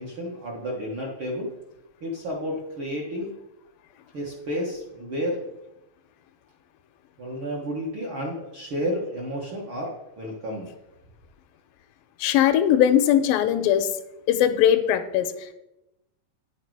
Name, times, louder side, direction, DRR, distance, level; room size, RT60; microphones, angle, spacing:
voice 1, 0.0-1.5 2.0-3.3 4.1-5.4 7.2-10.7, equal, 55° right, -3 dB, 1.4 m, -31 dB
voice 2, 12.2-13.9 14.3-15.5, left 10 dB, 85° left, 9 dB, 2.3 m, -20 dB
9.7 x 6.6 x 4.7 m, 0.92 s
omnidirectional pair, 4.0 m